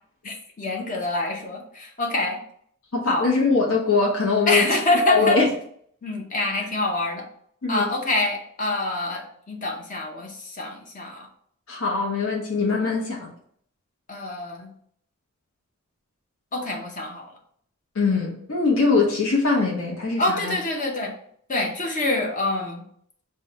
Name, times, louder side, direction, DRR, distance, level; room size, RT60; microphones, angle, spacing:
voice 1, 0.2-2.4 3.1-3.3 4.5-5.4 6.0-7.3 7.7-11.3 14.1-14.7 16.5-17.3 20.2-21.1 21.5-22.8, left 2 dB, 35° left, 1 dB, 0.7 m, -26 dB
voice 2, 2.9-4.7 5.1-5.5 7.6-7.9 11.7-13.3 17.9-20.6, left 4 dB, 65° left, -2 dB, 0.9 m, -22 dB
5.3 x 2.2 x 4.0 m, 0.63 s
head